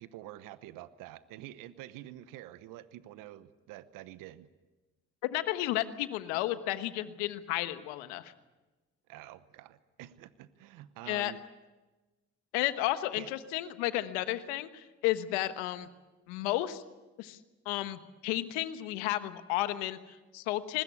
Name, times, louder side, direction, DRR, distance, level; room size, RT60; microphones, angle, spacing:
voice 1, 0.0-4.5 9.1-11.4 13.2-13.3, right 14 dB, 80° right, 14 dB, 1.0 m, -47 dB
voice 2, 5.3-8.3 11.1-11.3 12.5-15.9 16.3-16.8 17.2-17.4 17.6-20.8, left 15 dB, 90° left, 11 dB, 1.3 m, -32 dB
24.5 x 20.0 x 8.4 m, 1.1 s
hypercardioid pair, 45°, 32 cm